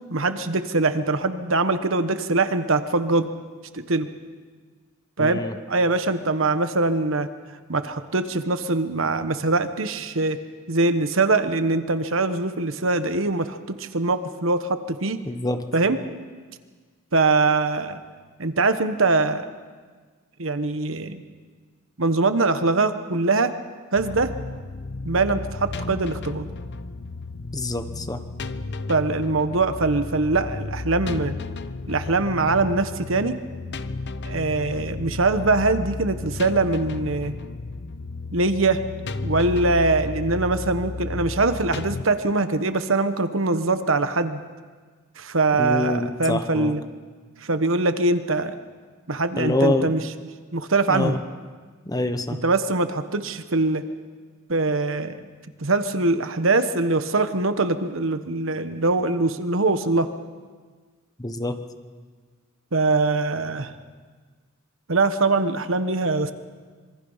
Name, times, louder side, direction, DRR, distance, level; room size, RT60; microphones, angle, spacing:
voice 1, 0.1-3.3 3.7-4.1 5.2-5.4 5.7-7.3 7.7-10.4 10.7-15.2 15.7-16.0 17.1-18.0 18.4-19.4 20.4-21.2 22.0-23.5 23.9-24.3 25.0-26.5 28.9-31.4 31.9-33.3 34.2-37.3 38.3-38.8 39.2-44.4 45.2-46.8 47.4-48.5 49.1-50.0 50.5-51.2 52.4-53.8 54.5-55.2 55.6-60.1 62.7-63.7 64.9-66.3, right 3 dB, 65° right, 10 dB, 1.2 m, -22 dB
voice 2, 5.2-5.6 15.2-15.7 27.5-28.2 45.6-46.8 49.4-49.9 50.9-51.2 51.8-52.4 61.2-61.6, left 2 dB, 20° left, 8 dB, 1.1 m, -25 dB
sound 1, 23.9-42.0, left 3 dB, 55° left, 0.9 m, -33 dB
26.0 x 23.5 x 5.7 m, 1.5 s
head